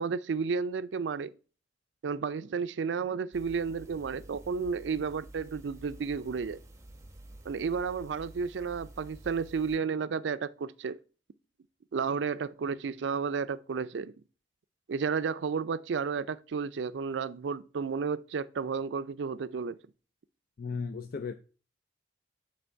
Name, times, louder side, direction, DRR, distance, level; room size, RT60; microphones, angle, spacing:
voice 1, 0.0-1.3 2.0-6.6 7.5-11.0 11.9-14.1 14.9-19.8, right 5 dB, 85° right, 0.4 m, -32 dB
sound 1, 3.3-9.8, right 1 dB, 15° right, 0.8 m, -50 dB
voice 2, 20.6-21.3, left 5 dB, 55° left, 0.4 m, -35 dB
9.4 x 3.4 x 4.5 m
head